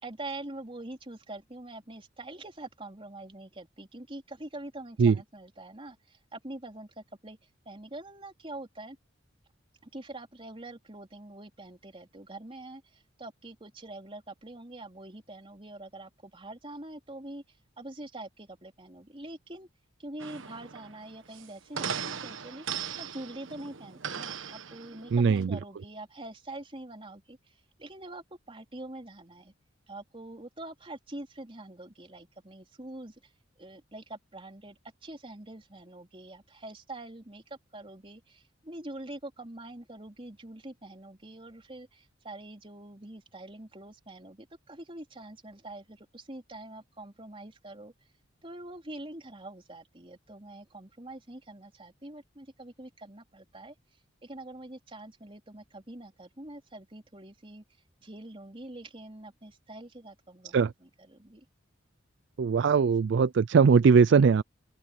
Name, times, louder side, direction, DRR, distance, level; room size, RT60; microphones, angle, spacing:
voice 1, 0.0-7.4 7.7-9.0 9.8-19.7 20.0-29.5 29.9-33.1 33.6-47.9 48.4-53.7 54.2-57.6 58.0-61.5, right 2 dB, 25° right, 4.0 m, -45 dB
sound 1, 20.2-25.5, right 7 dB, 75° right, 1.2 m, -38 dB
voice 2, 25.1-25.6 60.5-60.7 62.4-64.4, right 5 dB, 60° right, 0.4 m, -20 dB
open air
head